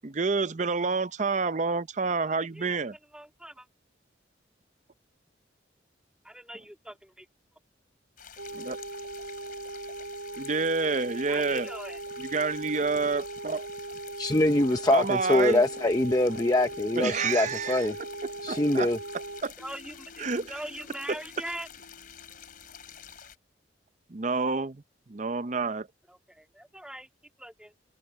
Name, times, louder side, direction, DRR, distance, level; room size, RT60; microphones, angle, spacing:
voice 1, 0.0-3.0 8.5-8.8 10.4-11.7 12.2-13.7 14.9-15.7 16.9-17.9 18.5-18.9 19.4-19.5 20.2-20.6 24.1-24.8 25.1-25.9, right 4 dB, 40° right, 0.6 m, -28 dB
voice 2, 2.2-2.8 3.1-3.7 6.2-7.3 11.3-12.0 19.6-21.7 26.1-27.1 27.4-27.7, right 1 dB, 5° right, 2.8 m, -41 dB
sound 1, 8.2-23.4, left 8 dB, 50° left, 3.7 m, -49 dB
sound 2, 8.4-19.4, right 2 dB, 80° right, 4.8 m, -39 dB
voice 3, 14.2-18.0 18.4-19.0, left 1 dB, 20° left, 0.7 m, -24 dB
sound 3, 15.3-23.2, left 1 dB, 75° left, 4.1 m, -55 dB
head